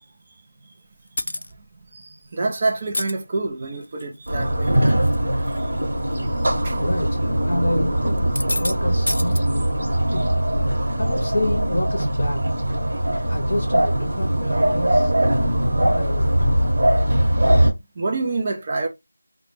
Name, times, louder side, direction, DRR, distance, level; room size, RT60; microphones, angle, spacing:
sound 1, 1.2-1.5 2.8-3.1 3.8-4.3 4.7-5.2 5.5-5.6 6.4-6.6 8.2-8.7 9.1-9.4, left 1 dB, 75° left, 0.3 m, -27 dB
voice 1, 1.9-4.9 6.2-6.3 6.6-6.8 18.0-18.9, right 3 dB, 25° right, 0.4 m, -27 dB
sound 2, 4.3-17.7, right 1 dB, 50° right, 1.0 m, -21 dB
voice 2, 6.8-9.7 10.1-10.3 11.0-12.4 13.3-15.1 15.4-16.6, left 1 dB, 35° left, 0.6 m, -28 dB
2.1 x 2.1 x 3.0 m
figure-of-eight pair, 175°, 0 cm